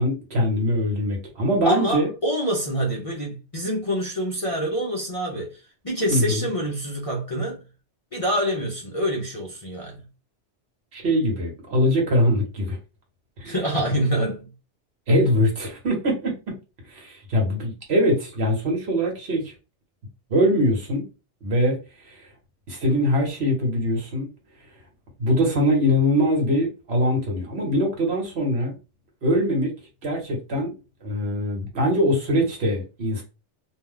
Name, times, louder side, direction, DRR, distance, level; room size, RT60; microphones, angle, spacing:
voice 1, 0.0-2.1 6.1-6.5 10.9-12.8 13.4-13.5 15.1-16.3 16.9-19.5 20.3-21.0 21.4-22.3 22.7-24.3 25.2-28.7 29.2-29.7 30.0-33.2, equal, 65° right, 1.3 m, -22 dB
voice 2, 1.6-7.6 8.1-10.0 13.4-14.5, equal, 40° left, 0.5 m, -26 dB
2.6 x 2.2 x 3.6 m
omnidirectional pair, 1.2 m